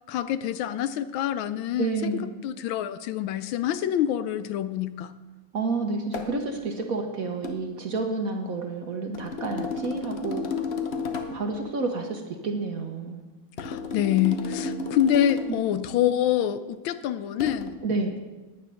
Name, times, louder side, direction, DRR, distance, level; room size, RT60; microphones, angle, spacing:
voice 1, 0.1-5.1 13.6-17.7, left 11 dB, 80° left, 13 dB, 1.3 m, -26 dB
voice 2, 1.8-2.3 5.5-10.4 11.3-13.2 14.8-14.9 17.8-18.2, right 3 dB, 55° right, 4 dB, 1.1 m, -30 dB
sound 1, 6.1-6.4 7.4-7.6 9.1-11.5 13.6-15.7 17.4-17.7, left 4 dB, 50° left, 0.7 m, -32 dB
9.9 x 9.3 x 6.3 m, 1.2 s
omnidirectional pair, 2.3 m